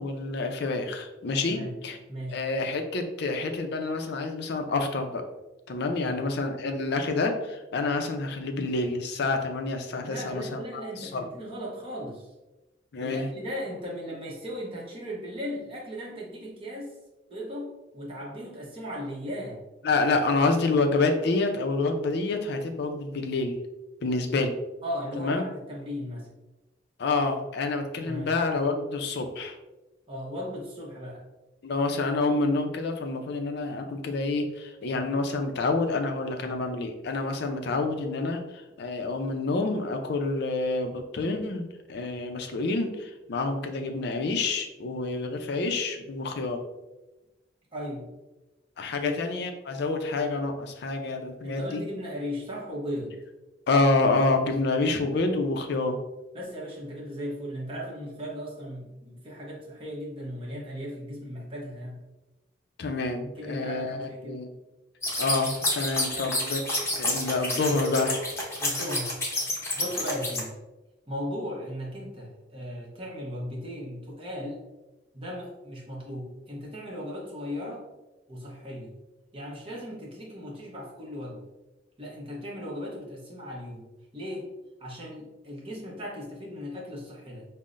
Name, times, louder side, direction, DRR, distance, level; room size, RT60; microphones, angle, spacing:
voice 1, 0.0-2.0 2.3-5.2 5.7-11.2 12.9-13.3 19.8-23.6 24.0-24.5 25.2-25.4 27.0-29.6 31.6-46.6 48.8-51.8 53.7-56.0 62.8-64.5 65.2-66.6 67.0-68.1, left 3 dB, 65° left, 5 dB, 0.5 m, -28 dB
voice 2, 1.5-1.8 2.1-2.4 6.0-6.2 10.0-12.3 13.0-16.9 17.3-19.6 24.8-26.3 28.0-28.3 30.1-31.2 36.3-36.6 47.7-48.1 49.0-49.1 51.4-53.2 56.3-62.0 63.3-64.4 66.1-66.3 68.6-69.2 69.8-70.5 71.1-74.6 75.1-77.9 78.3-78.9 79.3-81.4 82.0-83.9 84.1-84.5 84.8-87.5, equal, 30° right, -3 dB, 0.9 m, -37 dB
sound 1, 65.0-70.4, left 1 dB, 15° left, 0.8 m, -29 dB
5.5 x 2.1 x 2.5 m, 1.0 s
head